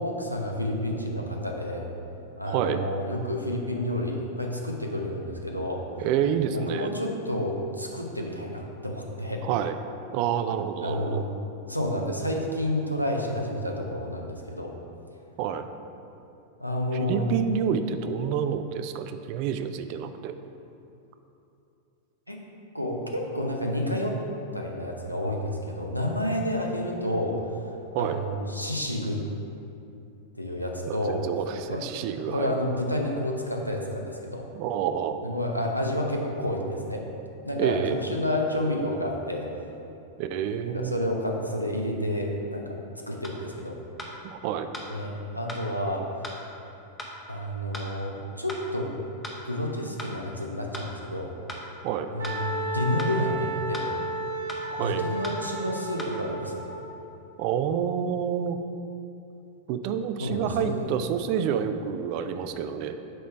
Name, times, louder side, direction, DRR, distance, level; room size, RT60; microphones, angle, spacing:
voice 1, 0.0-1.9 2.4-5.8 6.5-9.4 10.8-11.3 11.7-14.7 16.6-17.3 22.3-22.4 22.7-24.2 24.5-27.5 28.0-29.2 30.4-31.2 31.7-31.8 32.2-34.5 35.2-37.0 37.5-39.5 40.6-42.7 43.1-43.8 44.9-46.0 47.3-48.9 49.4-51.3 52.1-53.9 54.8-56.6 60.2-60.9, left 1 dB, 90° left, 0 dB, 0.6 m, -30 dB
voice 2, 2.5-2.8 6.0-6.9 9.4-9.7 10.1-11.3 15.4-15.7 16.9-20.3 27.9-28.2 30.9-32.6 34.5-35.2 37.6-38.0 40.2-41.0 44.2-44.7 51.8-52.1 54.7-55.1 57.4-58.6 59.7-63.0, right 8 dB, 45° right, 9 dB, 0.3 m, -28 dB
sound 1, 43.2-43.4 44.0-44.1 44.7-44.9 45.5-45.6 46.2-46.4 47.0-47.1 47.7-47.9 48.5-48.6 49.2-49.4 50.0-50.1 50.7-50.9 51.5-51.6 52.2-52.4 53.0-53.1 53.7-53.9 54.5-54.6 55.2-55.4 56.0-56.1, left 1 dB, 10° left, 0.7 m, -38 dB
Wind instrument woodwind instrument, 52.2-56.8, right 2 dB, 75° right, 1.1 m, -32 dB
7.8 x 3.1 x 4.4 m, 2.8 s
figure-of-eight pair, 90°, 0 cm